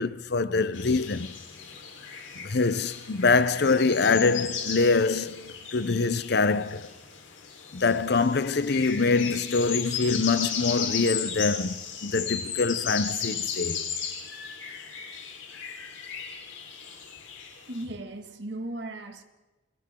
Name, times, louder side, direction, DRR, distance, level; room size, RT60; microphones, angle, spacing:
voice 1, 0.0-1.3 2.4-6.9 7.7-13.9, left 4 dB, 55° left, 0.7 m, -24 dB
sound 1, 0.7-17.8, left 7 dB, 75° left, 4.2 m, -36 dB
voice 2, 17.7-19.2, right 1 dB, 60° right, 2.1 m, -36 dB
30.0 x 24.0 x 3.8 m
head